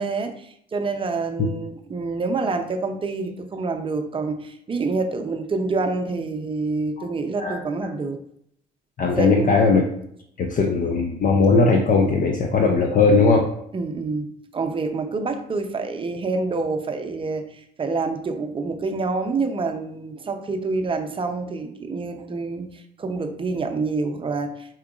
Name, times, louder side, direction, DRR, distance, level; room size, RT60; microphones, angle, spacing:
voice 1, 0.0-8.2 9.2-9.5 13.7-24.7, right 3 dB, 25° right, 5 dB, 0.6 m, -27 dB
voice 2, 9.0-9.8 10.4-13.5, left 4 dB, 40° left, 1 dB, 0.5 m, -18 dB
4.6 x 2.9 x 2.4 m, 0.70 s
hypercardioid pair, 65°, 21 cm